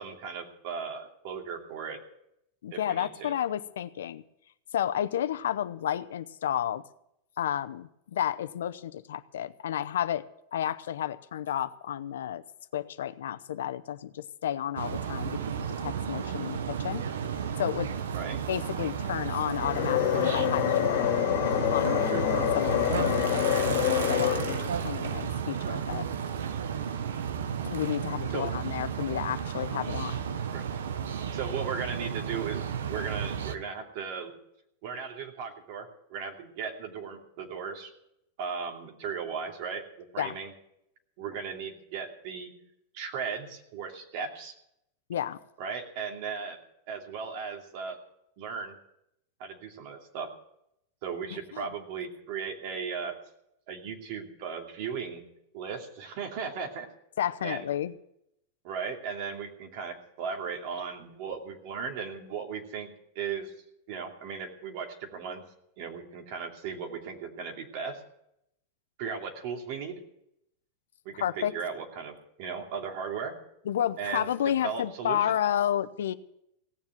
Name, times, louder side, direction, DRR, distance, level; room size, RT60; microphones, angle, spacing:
voice 1, 0.0-2.0 2.7-3.4 18.1-18.4 20.0-20.2 28.3-28.5 30.5-30.6 31.3-34.3 34.8-37.9 38.4-39.8 40.1-40.5 41.2-42.5 42.9-44.5 45.6-46.6 46.9-48.0 48.4-48.7 49.4-50.3 51.0-53.1 53.7-55.2 55.5-56.9 57.4-57.7 58.6-62.9 63.1-63.5 63.9-65.4 65.8-68.0 69.0-69.9 71.0-73.3 74.0-74.3 74.6-75.4, right 6 dB, 60° right, 2 dB, 2.7 m, -36 dB
voice 2, 2.6-4.2 4.7-6.8 7.4-10.2 10.5-12.4 12.7-15.4 15.8-17.0 17.6-17.9 18.5-21.1 21.7-26.0 27.6-30.3 40.2-40.4 45.1-45.4 51.5-51.7 57.2-57.9 71.2-71.5 73.7-76.1, left 10 dB, 85° left, 12 dB, 0.7 m, -31 dB
sound 1, 14.8-33.6, right 7 dB, 85° right, 1.0 m, -33 dB
sound 2, 19.4-24.8, left 13 dB, 65° left, 1.9 m, -27 dB
17.0 x 7.3 x 9.3 m, 0.78 s
hypercardioid pair, 120°, 0 cm